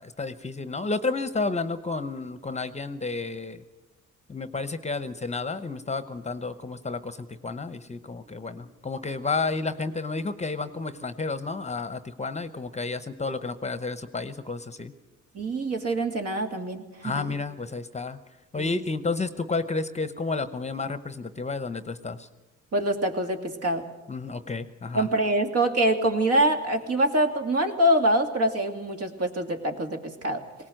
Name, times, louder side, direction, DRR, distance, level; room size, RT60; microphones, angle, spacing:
voice 1, 0.0-3.6 4.3-14.9 17.0-18.2 18.5-22.3 24.1-25.1, left 3 dB, 20° left, 12 dB, 0.9 m, -31 dB
voice 2, 15.3-17.3 18.5-18.8 22.7-23.9 24.9-30.4, right 1 dB, 55° right, 4 dB, 2.6 m, -25 dB
19.5 x 18.5 x 7.8 m, 1.0 s
cardioid pair, 90°, 30 cm